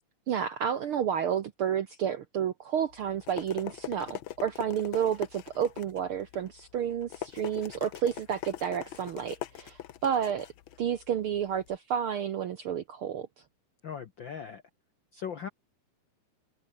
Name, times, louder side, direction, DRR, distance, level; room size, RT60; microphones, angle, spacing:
voice 1, 0.3-10.5 10.8-13.3, right 8 dB, 65° right, 1.4 m, -31 dB
sound 1, 2.9-11.8, left 12 dB, 80° left, 1.1 m, -42 dB
voice 2, 13.8-14.6 15.1-15.5, left 7 dB, 65° left, 1.2 m, -38 dB
omnidirectional pair, 3.6 m